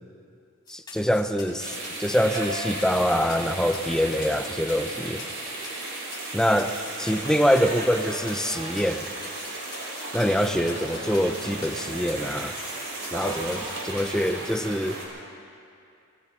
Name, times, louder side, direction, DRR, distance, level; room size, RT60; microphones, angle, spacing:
sound 1, 0.7-14.3, left 4 dB, 20° left, 3.9 m, -44 dB
voice 1, 0.7-5.2 6.3-9.1 10.1-12.6 13.1-15.0, equal, 5° left, 8 dB, 0.4 m, -25 dB
sound 2, 1.6-15.1, right 2 dB, 90° right, 3.6 m, -35 dB
sound 3, 10.3-12.9, right 1 dB, 75° left, 2.7 m, -42 dB
23.5 x 19.0 x 2.8 m, 2.5 s
head